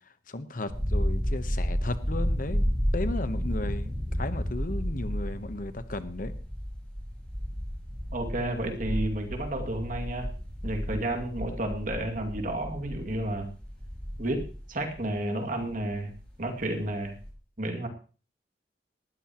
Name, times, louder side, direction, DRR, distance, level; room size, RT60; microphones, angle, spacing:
voice 1, 0.3-2.7 2.9-6.3, left 2 dB, 50° left, 11 dB, 1.0 m, -35 dB
sound 1, 0.7-16.4 16.8-17.3, equal, 5° left, 6.1 m, -32 dB
voice 2, 8.1-10.3 10.6-13.5 14.2-16.1 16.4-17.1 17.6-17.9, right 1 dB, 50° right, 4 dB, 2.4 m, -31 dB
19.0 x 13.5 x 3.0 m, 0.38 s
head